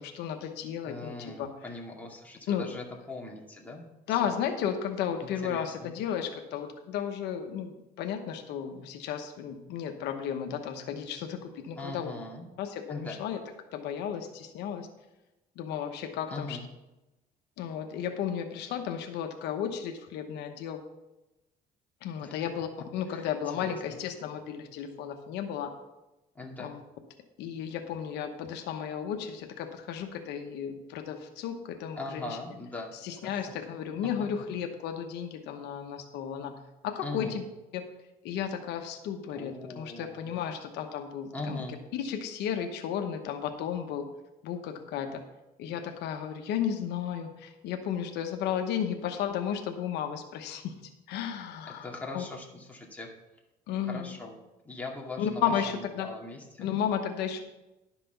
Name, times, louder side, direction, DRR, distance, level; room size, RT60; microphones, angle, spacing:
voice 1, 0.0-1.5 2.5-2.7 4.1-12.1 12.6-13.4 13.7-14.9 15.6-16.6 17.6-20.8 22.0-22.7 22.9-25.7 26.6-26.8 27.4-32.4 33.0-36.6 36.8-37.4 37.7-37.9 38.2-41.6 41.9-44.1 44.4-45.2 45.6-50.7 51.1-51.9 52.1-52.2 53.7-54.2 55.2-56.1 56.6-57.4, left 8 dB, 85° left, 5 dB, 1.1 m, -33 dB
voice 2, 0.8-3.8 4.2-4.3 5.2-5.9 11.8-12.4 12.9-13.2 16.3-16.7 22.2-22.3 23.1-23.7 26.3-26.7 32.0-32.9 33.2-33.3 37.0-37.4 39.3-40.4 41.3-41.8 51.7-53.1 53.8-54.3 54.6-56.7, left 2 dB, 10° left, -1 dB, 2.2 m, -40 dB
11.5 x 6.0 x 5.8 m, 0.98 s
cardioid pair, 110°, 17 cm